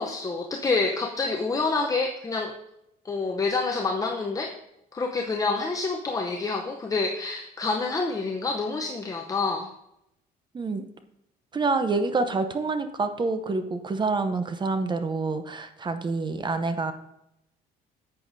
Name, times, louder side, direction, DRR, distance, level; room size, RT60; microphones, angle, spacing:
voice 1, 0.0-2.5 3.0-4.5 4.9-9.7, left 3 dB, 20° left, 2 dB, 0.7 m, -27 dB
voice 2, 11.5-16.9, right 3 dB, 25° right, 9 dB, 0.7 m, -27 dB
11.0 x 8.0 x 2.7 m, 0.83 s
cardioid pair, 110°, 17 cm